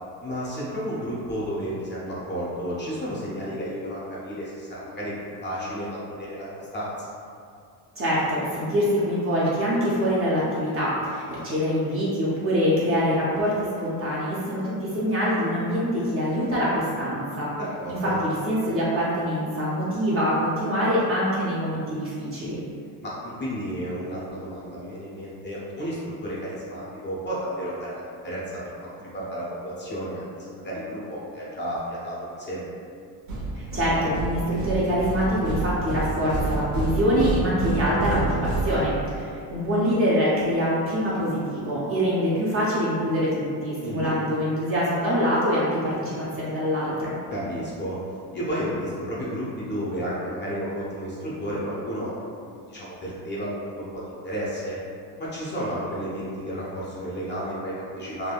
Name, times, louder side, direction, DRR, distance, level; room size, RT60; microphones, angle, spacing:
voice 1, 0.2-6.5 6.7-7.2 17.5-18.2 23.0-32.6 36.2-36.3 43.8-44.2 47.3-48.0 48.3-54.8 55.2-58.3, equal, 25° left, -7 dB, 0.5 m, -32 dB
voice 2, 8.0-17.5 17.9-22.6 33.5-47.1, equal, 30° right, -7 dB, 0.5 m, -24 dB
sound 1, 33.3-39.3, right 2 dB, 90° right, 1.0 m, -29 dB
3.4 x 2.1 x 2.3 m, 2.4 s
cardioid pair, 125°, 49 cm